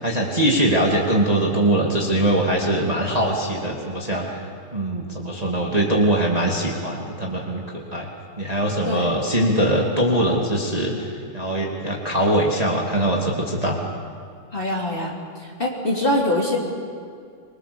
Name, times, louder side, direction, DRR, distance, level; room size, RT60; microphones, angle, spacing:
voice 1, 0.0-4.4 4.7-7.6 7.9-8.1 8.4-13.8, right 1 dB, 15° right, -2 dB, 2.5 m, -22 dB
voice 2, 14.5-16.6, left 1 dB, 25° left, -2 dB, 3.1 m, -24 dB
25.0 x 23.0 x 7.0 m, 2.3 s
omnidirectional pair, 2.4 m